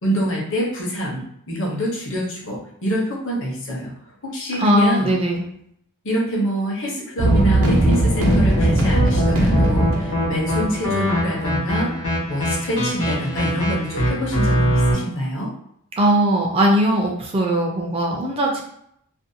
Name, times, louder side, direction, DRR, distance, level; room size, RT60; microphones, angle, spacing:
voice 1, 0.0-3.9 4.2-5.1 6.0-11.9 12.3-15.5, equal, 60° left, -2 dB, 0.8 m, -26 dB
voice 2, 4.5-5.5 16.0-18.6, right 1 dB, 25° right, 0 dB, 0.4 m, -19 dB
sound 1, 7.2-14.9, equal, 90° left, 1.0 m, -23 dB
sound 2, 7.2-11.2, right 1 dB, 85° right, 0.7 m, -19 dB
2.5 x 2.1 x 2.7 m, 0.72 s
head